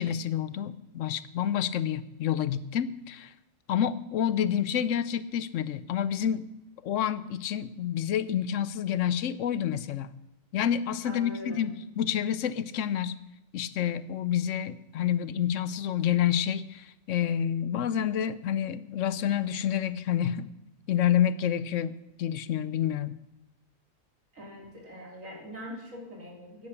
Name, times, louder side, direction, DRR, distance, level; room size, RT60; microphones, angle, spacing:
voice 1, 0.0-3.3 3.7-6.4 6.8-10.1 10.5-13.2 13.5-20.5 20.9-23.1, left 9 dB, 75° left, 15 dB, 1.0 m, -28 dB
voice 2, 11.0-11.7 24.3-26.7, left 1 dB, 85° right, -1 dB, 3.8 m, -42 dB
10.5 x 10.0 x 7.1 m, 0.93 s
omnidirectional pair, 1.3 m